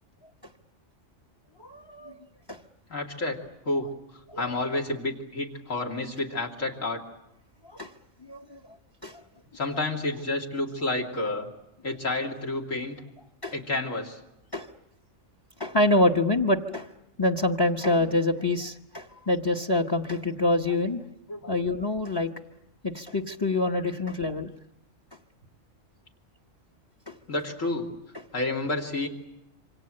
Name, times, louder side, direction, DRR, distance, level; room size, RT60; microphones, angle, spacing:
voice 1, 1.6-2.2 2.5-2.6 4.3-4.6 7.7-7.9 8.2-8.6 9.0-9.2 13.4-13.5 14.5-14.7 15.6-16.9 17.2-21.0 21.5-22.3 22.8-24.5 27.1-27.2, left 2 dB, 20° left, 5 dB, 0.9 m, -26 dB
voice 2, 2.9-3.4 3.6-3.9 4.1-7.0 9.5-11.5 11.8-13.0 13.5-14.2 21.3-21.5 27.3-27.9 28.3-29.1, left 2 dB, 85° left, 0 dB, 3.2 m, -30 dB
27.0 x 25.5 x 7.7 m, 0.86 s
omnidirectional pair, 1.3 m